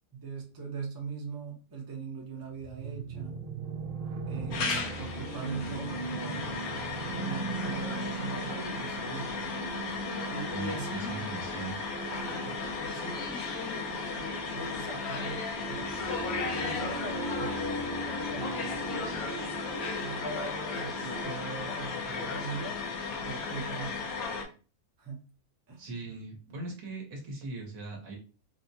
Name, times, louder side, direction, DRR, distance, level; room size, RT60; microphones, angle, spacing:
voice 1, 0.1-3.4 4.3-6.5 7.1-9.4 10.3-11.2 12.1-15.9 16.6-19.0 20.0-22.8 23.2-24.0 25.0-25.2 25.7-26.1, right 3 dB, 20° right, -1 dB, 0.6 m, -41 dB
sound 1, 2.6-21.2, right 4 dB, 85° right, 0.4 m, -39 dB
sound 2, 4.5-24.4, left 4 dB, 80° left, 1.2 m, -35 dB
voice 2, 10.5-11.8 25.8-28.2, right 3 dB, 70° right, 0 dB, 1.5 m, -40 dB
4.0 x 2.1 x 2.7 m, 0.36 s
omnidirectional pair, 1.6 m